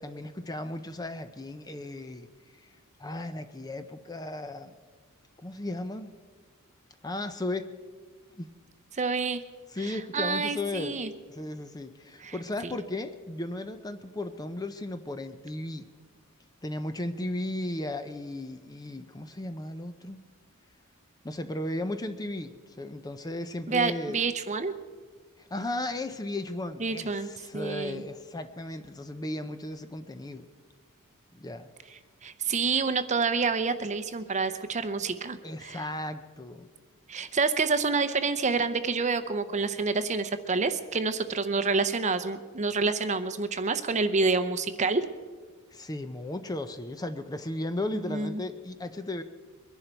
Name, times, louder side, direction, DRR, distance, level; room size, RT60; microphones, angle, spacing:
voice 1, 0.0-2.3 3.0-4.7 5.4-6.1 7.0-7.7 8.4-8.5 9.7-15.8 16.6-20.2 21.2-24.2 25.4-30.5 31.3-31.7 35.4-36.7 45.7-49.2, left 1 dB, 15° left, 9 dB, 0.6 m, -35 dB
voice 2, 8.9-9.4 9.8-11.1 12.2-12.4 12.6-12.7 23.7-24.7 26.8-28.0 32.2-35.9 37.1-45.1 48.1-48.3, right 4 dB, 30° right, 11 dB, 0.7 m, -28 dB
22.5 x 11.0 x 4.5 m, 1.5 s
head